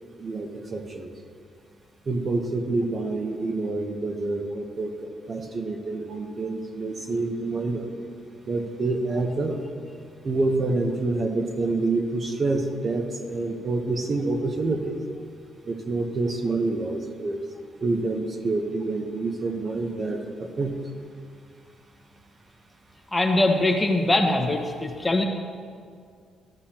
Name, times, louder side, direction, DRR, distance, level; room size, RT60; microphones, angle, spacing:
voice 1, 0.2-1.1 2.1-7.9 8.5-9.6 10.2-15.0 15.7-17.4 17.8-20.8, right 3 dB, 40° right, 4 dB, 1.0 m, -27 dB
voice 2, 23.1-25.2, left 2 dB, 15° left, 2 dB, 1.2 m, -22 dB
13.5 x 12.0 x 2.9 m, 2.2 s
cardioid pair, 90°, 0 cm